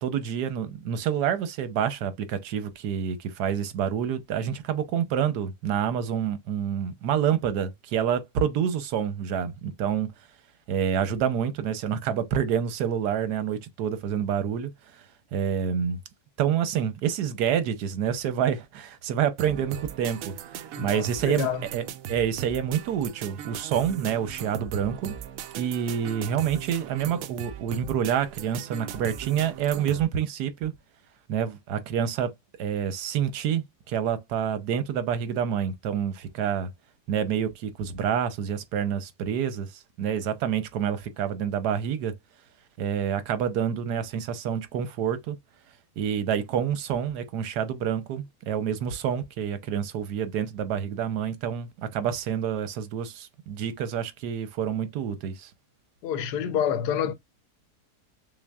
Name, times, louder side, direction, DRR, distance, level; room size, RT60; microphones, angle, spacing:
voice 1, 0.0-10.1 10.7-15.0 15.3-16.0 16.4-20.4 20.8-25.2 25.6-30.7 31.3-32.3 32.6-36.7 37.1-42.1 42.8-45.4 46.0-55.5, right 8 dB, 85° right, 1.3 m, -28 dB
sound 1, 19.4-30.1, right 9 dB, 70° right, 0.9 m, -39 dB
voice 2, 20.7-21.7 56.0-57.1, left 8 dB, 90° left, 1.2 m, -28 dB
6.1 x 2.1 x 2.2 m
omnidirectional pair, 1.7 m